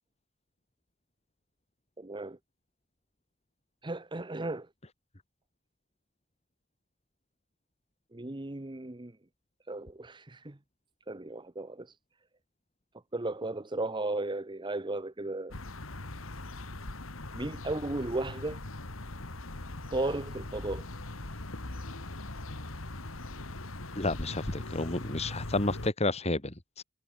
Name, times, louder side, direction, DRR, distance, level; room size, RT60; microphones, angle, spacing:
voice 1, 2.0-2.4 3.8-4.7 8.1-9.1 9.7-10.6 11.1-11.9 13.1-15.5 17.3-18.6 19.9-20.9, right 2 dB, 25° right, 0.9 m, -35 dB
sound 1, 15.5-25.9, left 2 dB, 90° left, 2.4 m, -40 dB
voice 2, 23.9-26.8, left 2 dB, 30° left, 2.4 m, -31 dB
head